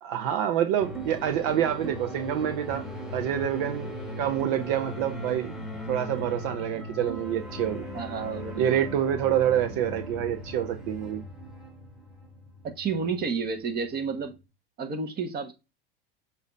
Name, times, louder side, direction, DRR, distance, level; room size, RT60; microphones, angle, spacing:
voice 1, 0.0-2.9 3.1-3.9 4.2-5.5 5.9-7.8 8.6-11.2, right 10 dB, 60° right, 0.8 m, -27 dB
sound 1, 0.8-14.4, equal, ahead, 1.5 m, -39 dB
voice 2, 7.9-8.8 12.6-14.3 14.8-15.5, right 5 dB, 30° right, 1.4 m, -31 dB
7.0 x 2.8 x 5.1 m
supercardioid pair, 110°, 30 cm